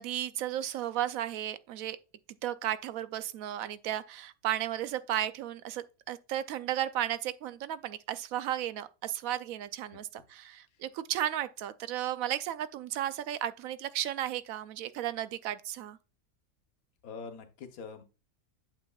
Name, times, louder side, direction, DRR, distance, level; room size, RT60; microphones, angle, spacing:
voice 1, 0.0-2.0 2.4-16.0, right 12 dB, 75° right, 1.0 m, -34 dB
voice 2, 9.9-10.2 10.6-10.8 17.0-18.0, left 5 dB, 75° left, 1.4 m, -45 dB
8.2 x 7.5 x 2.3 m
omnidirectional pair, 1.5 m